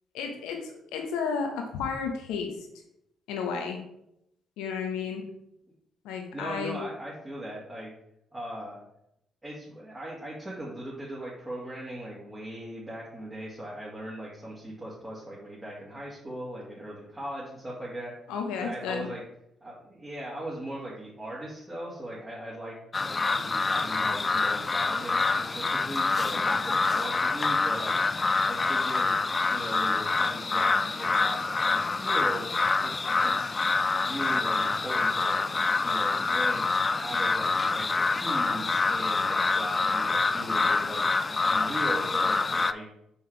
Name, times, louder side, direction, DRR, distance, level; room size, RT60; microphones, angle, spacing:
voice 1, 0.1-2.7 3.3-3.8 4.6-5.2 6.0-6.8 18.3-19.1, left 6 dB, 75° left, 4 dB, 1.1 m, -32 dB
voice 2, 6.3-7.9 8.3-8.8 9.4-18.1 18.6-19.2 19.6-22.7 23.0-27.9 28.4-29.2 29.5-32.5 32.8-33.6 34.0-35.4 35.8-42.9, right 1 dB, 20° right, -6 dB, 2.2 m, -39 dB
sound 1, 22.9-42.7, left 3 dB, 35° left, 0.3 m, -26 dB
5.7 x 5.6 x 3.4 m, 0.78 s
hypercardioid pair, 45°, 0 cm